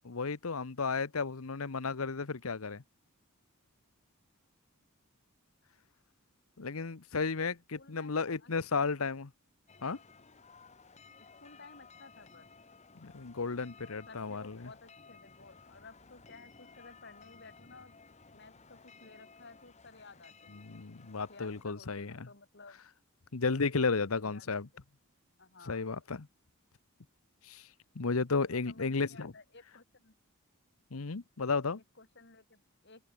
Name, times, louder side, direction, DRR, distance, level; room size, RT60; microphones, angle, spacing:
voice 1, 0.0-2.8 6.6-9.3 9.8-10.0 12.9-14.7 20.5-22.3 23.3-24.7 25.7-26.3 27.5-27.7 27.9-29.3 30.9-31.8, left 4 dB, 80° left, 1.0 m, -33 dB
voice 2, 7.7-9.1 11.2-12.5 13.8-18.0 18.3-20.7 21.3-22.8 23.5-23.6 23.8-24.6 25.4-25.9 28.3-30.1 32.0-33.1, left 3 dB, 55° left, 4.2 m, -55 dB
sound 1, 9.7-21.6, left 4 dB, 30° left, 1.4 m, -57 dB
open air
head